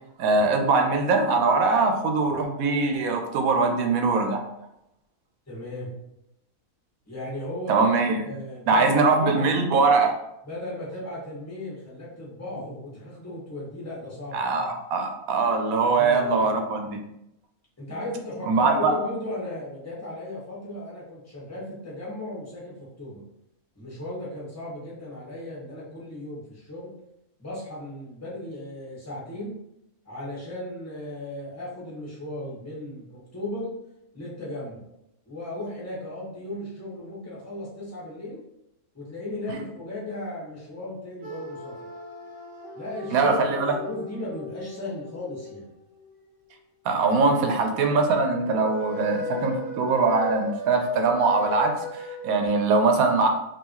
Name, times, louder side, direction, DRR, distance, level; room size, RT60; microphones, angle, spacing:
voice 1, 0.2-4.4 7.7-8.2 8.7-10.1 14.3-17.0 18.5-18.9 39.5-39.6 43.1-43.7 46.8-53.3, right 4 dB, 85° right, 4 dB, 1.1 m, -22 dB
voice 2, 5.5-5.9 7.1-9.5 10.4-14.7 15.8-16.5 17.8-23.2 23.7-26.9 27.4-29.5 30.0-33.7 34.1-34.9 35.2-38.4 38.9-41.7 42.7-43.3 43.8-45.7, left 1 dB, 10° left, -6 dB, 1.6 m, -36 dB
sound 1, 41.2-46.1 48.1-52.4, left 2 dB, 45° right, 1.2 m, -38 dB
5.4 x 2.8 x 3.0 m, 0.82 s
omnidirectional pair, 1.4 m